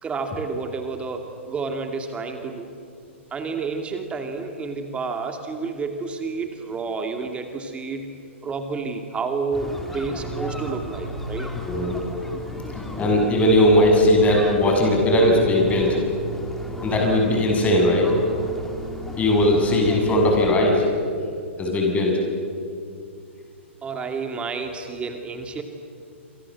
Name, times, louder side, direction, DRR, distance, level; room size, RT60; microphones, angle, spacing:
voice 1, 0.0-2.7 3.3-8.1 8.4-11.5 23.8-25.6, right 4 dB, 15° right, 5 dB, 2.5 m, -30 dB
City river ambience, 9.5-20.6, equal, 5° left, 3.5 m, -34 dB
voice 2, 12.7-16.0 16.8-18.1 19.2-20.8 21.6-22.1, left 1 dB, 20° left, 1 dB, 7.3 m, -18 dB
28.0 x 26.5 x 7.6 m, 2.3 s
hypercardioid pair, 120°, 7 cm